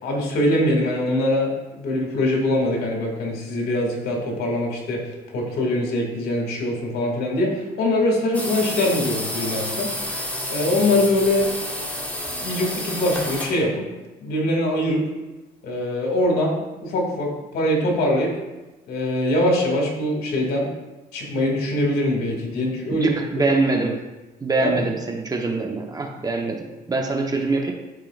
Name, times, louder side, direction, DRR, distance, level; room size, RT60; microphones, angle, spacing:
voice 1, 0.0-9.9 10.5-11.5 12.4-13.8 14.2-15.0 15.6-18.3 18.9-20.7 21.1-23.1 24.6-24.7, left 1 dB, 70° left, 0 dB, 2.3 m, -23 dB
sound 1, 8.3-13.6, left 1 dB, 10° left, 1.5 m, -30 dB
voice 2, 22.9-24.0 24.4-27.7, right 3 dB, 20° right, 2 dB, 0.9 m, -24 dB
13.0 x 4.6 x 2.5 m, 1.1 s
cardioid pair, 110°, 17 cm